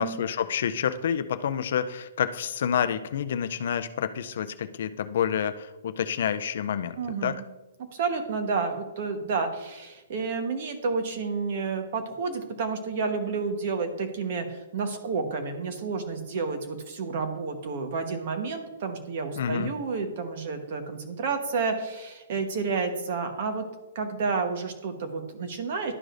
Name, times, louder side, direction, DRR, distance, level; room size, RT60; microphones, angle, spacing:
voice 1, 0.0-7.0 7.2-7.3 19.4-19.7, left 8 dB, 50° left, 12 dB, 0.4 m, -28 dB
voice 2, 7.0-7.4 7.9-23.6 23.9-25.9, right 4 dB, 40° right, 6 dB, 1.0 m, -30 dB
12.0 x 4.8 x 2.5 m, 1.1 s
hypercardioid pair, 175°, 0 cm